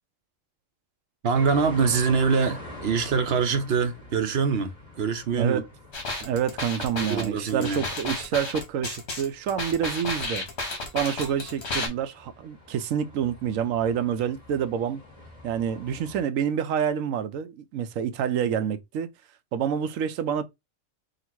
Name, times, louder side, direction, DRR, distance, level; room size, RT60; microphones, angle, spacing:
voice 1, 1.2-5.6 7.0-7.9, right 5 dB, 60° right, 0.8 m, -24 dB
sound 1, 1.3-16.2, equal, 25° left, 1.9 m, -45 dB
voice 2, 5.3-5.7 6.2-10.5 10.9-15.0 15.4-19.1 19.5-20.4, right 8 dB, 85° right, 1.0 m, -27 dB
sound 2, 5.9-11.9, left 2 dB, 55° left, 1.6 m, -32 dB
3.9 x 2.5 x 4.5 m
omnidirectional pair, 1.3 m